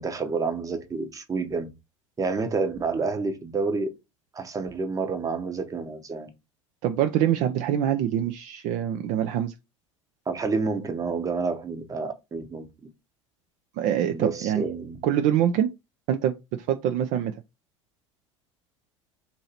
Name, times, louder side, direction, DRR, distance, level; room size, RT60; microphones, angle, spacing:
voice 1, 0.0-1.7 2.2-3.9 4.3-6.3 10.3-12.7 14.1-15.0, right 4 dB, 20° right, 0.8 m, -29 dB
voice 2, 6.8-9.5 13.8-14.6 15.0-15.7 16.1-17.3, right 10 dB, 50° right, 0.4 m, -25 dB
2.8 x 2.7 x 4.1 m
hypercardioid pair, 75°, 16 cm